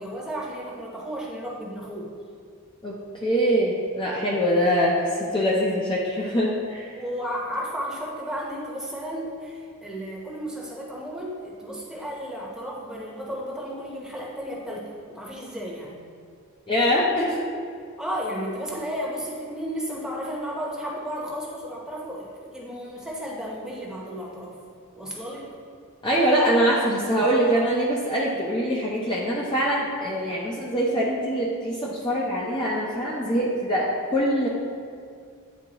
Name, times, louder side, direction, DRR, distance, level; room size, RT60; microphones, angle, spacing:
voice 1, 0.0-2.2 6.9-16.0 18.0-24.6 24.9-25.5, equal, 5° right, -4 dB, 0.9 m, -33 dB
voice 2, 3.2-7.0 16.7-17.4 26.0-34.5, equal, 20° left, -5 dB, 0.6 m, -23 dB
9.4 x 3.6 x 2.9 m, 2.3 s
head